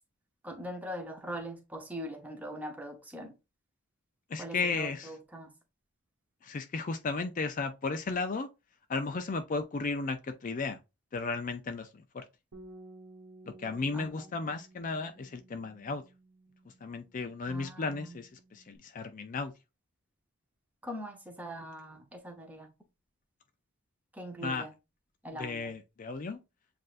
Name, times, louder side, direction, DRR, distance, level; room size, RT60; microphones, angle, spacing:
voice 1, 0.4-3.3 4.4-5.5 13.9-14.1 17.5-18.2 20.8-22.7 24.1-24.7 25.2-25.7, equal, 5° right, 0.8 m, -42 dB
voice 2, 4.3-5.2 6.4-8.5 8.9-10.8 11.1-12.2 13.4-16.0 16.8-19.5 24.4-24.7 25.4-26.4, left 4 dB, 35° left, 0.4 m, -34 dB
Bass guitar, 12.5-18.8, right 2 dB, 85° right, 1.1 m, -55 dB
7.5 x 2.6 x 2.5 m
head